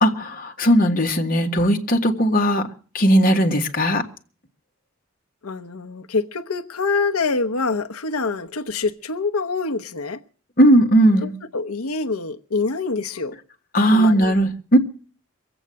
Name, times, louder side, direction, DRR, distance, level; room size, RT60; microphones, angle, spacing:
voice 1, 0.0-2.7 2.9-4.0 10.6-11.3 13.7-14.8, equal, 40° left, 1.5 m, -17 dB
voice 2, 5.4-10.2 11.2-13.3 13.9-14.3, left 4 dB, 90° left, 0.9 m, -25 dB
22.0 x 8.1 x 7.5 m
head